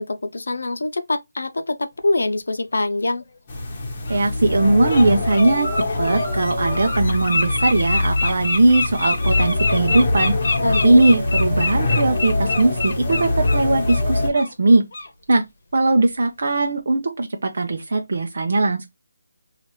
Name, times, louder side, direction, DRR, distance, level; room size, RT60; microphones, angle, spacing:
voice 1, 0.0-3.2 10.6-11.0, left 2 dB, 80° left, 0.6 m, -24 dB
Bird, 3.2-3.3 4.0-4.2 4.6-5.0 5.3-14.0 14.3-14.5 14.9-15.1, left 3 dB, 45° left, 1.0 m, -26 dB
sound 1, 3.5-14.3, left 2 dB, 25° left, 1.1 m, -23 dB
voice 2, 4.1-5.7 6.0-14.8 15.3-15.4 15.7-18.9, right 2 dB, 60° right, 0.6 m, -19 dB
4.1 x 2.5 x 3.1 m
figure-of-eight pair, 170°, 0 cm